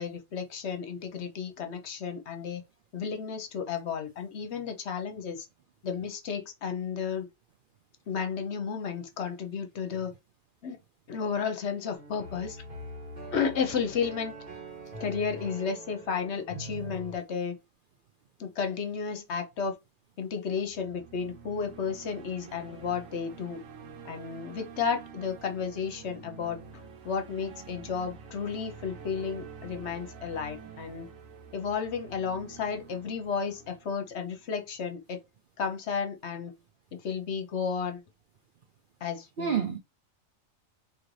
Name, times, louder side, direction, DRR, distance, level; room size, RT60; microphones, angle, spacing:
voice 1, 0.0-2.6 2.9-5.5 5.8-7.3 8.1-10.1 10.6-10.8 11.1-12.6 13.3-14.3 15.0-17.6 18.4-19.8 20.2-23.6 24.0-26.6 27.0-31.1 31.5-35.2 35.6-36.5 36.9-38.0 39.0-39.6, left 6 dB, 60° left, 1.0 m, -33 dB
sound 1, 11.9-17.2, right 1 dB, 35° right, 1.5 m, -43 dB
voice 2, 16.5-17.0 39.4-39.8, right 7 dB, 60° right, 0.5 m, -30 dB
sound 2, 20.5-34.7, right 6 dB, 85° right, 1.1 m, -48 dB
3.1 x 2.8 x 3.9 m
omnidirectional pair, 1.3 m